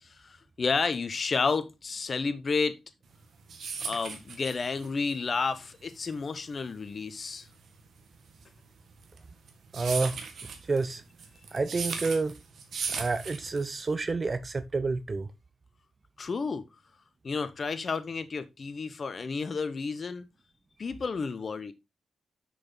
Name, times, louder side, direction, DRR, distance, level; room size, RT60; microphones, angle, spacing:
voice 1, 0.0-2.8 3.8-7.5 16.2-16.7 17.2-20.3 20.8-21.7, left 4 dB, 50° left, 1.1 m, -31 dB
sound 1, 3.1-13.9, right 5 dB, 70° right, 1.8 m, -38 dB
voice 2, 9.7-10.2 10.7-11.0 11.5-12.4 12.9-15.3, right 3 dB, 40° right, 0.7 m, -29 dB
6.5 x 6.2 x 3.8 m
cardioid pair, 60°, 0 cm